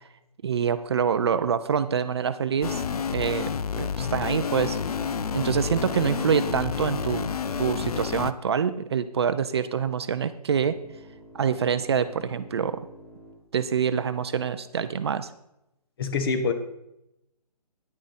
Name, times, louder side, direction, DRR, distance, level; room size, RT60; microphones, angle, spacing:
voice 1, 0.4-2.8 3.1-3.5 3.8-4.8 5.3-7.3 7.6-10.7 11.3-12.8 13.5-15.3, right 7 dB, 40° right, 12 dB, 0.6 m, -26 dB
sound 1, 2.6-8.3, left 6 dB, 65° left, 0.7 m, -29 dB
sound 2, 10.6-13.3, equal, ahead, 2.1 m, -50 dB
voice 2, 16.0-16.5, left 4 dB, 35° left, 9 dB, 1.2 m, -25 dB
10.0 x 10.0 x 4.1 m, 0.86 s
hypercardioid pair, 155°, 21 cm